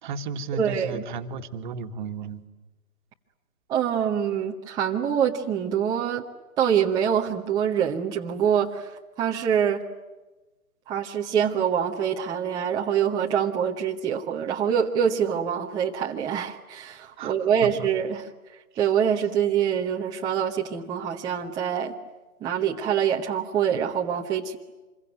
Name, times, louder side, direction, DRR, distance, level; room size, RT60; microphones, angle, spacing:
voice 1, 0.0-2.4 17.2-17.4 17.6-17.9 18.7-18.9, right 5 dB, 35° right, 1.8 m, -34 dB
voice 2, 0.6-1.0 3.7-6.3 6.6-8.9 9.2-9.8 10.9-18.2 18.8-21.9 22.4-24.6, right 8 dB, 10° right, 1.0 m, -25 dB
27.0 x 23.0 x 9.5 m
figure-of-eight pair, 135°, 43 cm